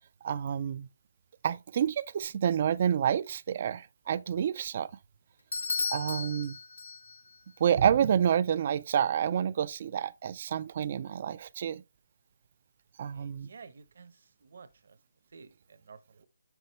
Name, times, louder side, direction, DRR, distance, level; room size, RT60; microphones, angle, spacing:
voice 1, 0.2-0.9 1.4-4.9 5.9-6.6 7.6-11.8 13.0-13.5, right 8 dB, 25° right, 0.3 m, -28 dB
Bell / Doorbell, 5.5-7.4, left 4 dB, 70° left, 0.6 m, -35 dB
voice 2, 13.1-15.0 15.3-16.3, right 5 dB, 45° right, 0.8 m, -53 dB
7.5 x 6.1 x 3.0 m
hypercardioid pair, 180°, 0 cm